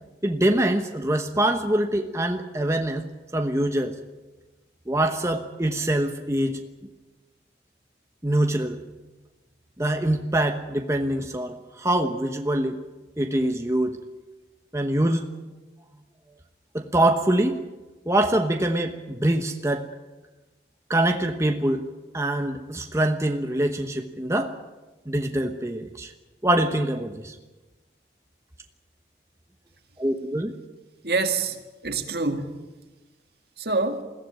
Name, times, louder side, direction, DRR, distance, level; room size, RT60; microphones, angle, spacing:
voice 1, 0.2-3.1 3.3-4.0 4.9-6.6 8.2-8.8 9.8-12.8 13.2-14.0 14.7-15.2 16.7-17.6 18.1-19.9 20.9-21.9 22.1-24.6 25.1-26.1 26.4-27.4 30.0-30.5, right 1 dB, 15° right, 4 dB, 1.1 m, -24 dB
voice 2, 31.0-32.6 33.6-34.0, right 3 dB, 60° right, 6 dB, 2.1 m, -26 dB
21.5 x 16.0 x 9.4 m, 1.2 s
head